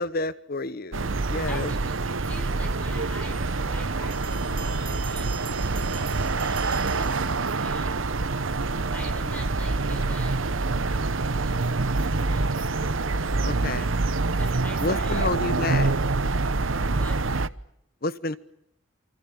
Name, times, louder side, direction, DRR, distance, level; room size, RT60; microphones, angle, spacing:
voice 1, 0.0-1.7 13.4-13.9 14.8-15.9 18.0-18.4, left 2 dB, 50° left, 16 dB, 1.1 m, -29 dB
sound 1, 0.9-17.5, right 3 dB, 80° right, 1.0 m, -26 dB
voice 2, 1.5-5.5 6.0-6.7 7.0-8.1 8.9-11.9 12.3-12.6 14.3-15.3 16.9-17.3, left 1 dB, 10° left, 6 dB, 4.6 m, -45 dB
Bowed string instrument, 2.4-6.2, left 4 dB, 70° left, 5.6 m, -48 dB
Bell, 4.1-7.9, right 7 dB, 25° right, 2.1 m, -43 dB
29.0 x 25.5 x 7.2 m, 0.72 s
head